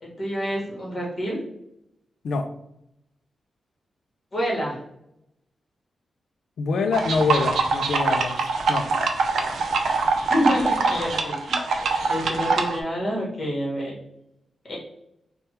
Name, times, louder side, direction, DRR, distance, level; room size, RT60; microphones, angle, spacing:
voice 1, 0.0-1.4 4.3-4.8 10.3-11.6 12.1-14.0 14.6-14.8, equal, 35° left, -4 dB, 1.3 m, -27 dB
voice 2, 6.6-8.4 8.7-8.9, left 4 dB, 70° left, 8 dB, 0.4 m, -25 dB
sound 1, 6.9-12.8, right 4 dB, 75° right, 0.5 m, -24 dB
3.3 x 2.2 x 4.1 m, 0.80 s
wide cardioid pair, 160°, 0 cm